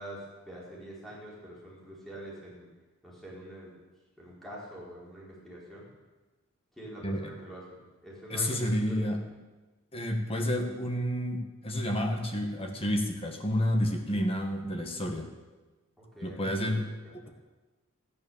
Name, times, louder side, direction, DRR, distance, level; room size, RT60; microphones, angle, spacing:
voice 1, 0.0-2.7 3.0-3.7 4.2-5.9 6.7-9.1 16.0-16.7 17.0-17.3, right 1 dB, ahead, -6 dB, 4.4 m, -45 dB
voice 2, 8.3-9.2 9.9-15.3 16.2-16.9 17.1-17.3, equal, 25° left, 4 dB, 1.6 m, -30 dB
15.5 x 9.9 x 7.3 m, 1.2 s
head